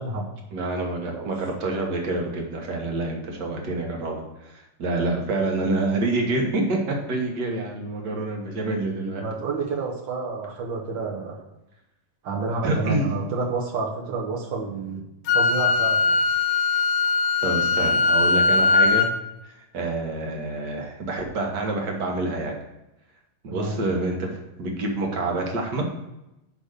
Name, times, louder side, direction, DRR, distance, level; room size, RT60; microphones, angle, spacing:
voice 1, 0.0-0.3 1.1-1.3 9.2-11.4 12.2-15.1 15.3-16.2 23.5-23.8, right 3 dB, 85° right, -2 dB, 1.0 m, -29 dB
voice 2, 0.5-9.2 12.6-13.1 17.4-19.1 19.6-22.5 23.4-25.8, right 2 dB, 55° right, 1 dB, 1.2 m, -27 dB
Wind instrument woodwind instrument, 15.3-19.1, left 4 dB, 75° left, 1.8 m, -20 dB
6.2 x 5.2 x 6.4 m, 0.91 s
omnidirectional pair, 3.7 m